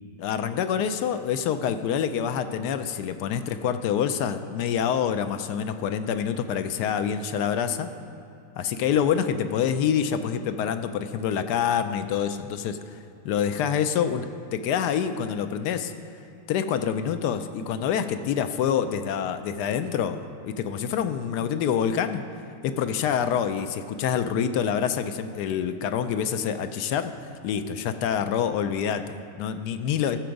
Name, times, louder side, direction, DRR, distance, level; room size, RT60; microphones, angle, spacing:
voice 1, 0.2-7.9 8.6-12.8 13.2-15.9 16.5-22.2 22.6-27.1 27.4-30.2, left 8 dB, 75° left, 9 dB, 1.1 m, -26 dB
14.5 x 6.9 x 5.2 m, 2.6 s
omnidirectional pair, 1.8 m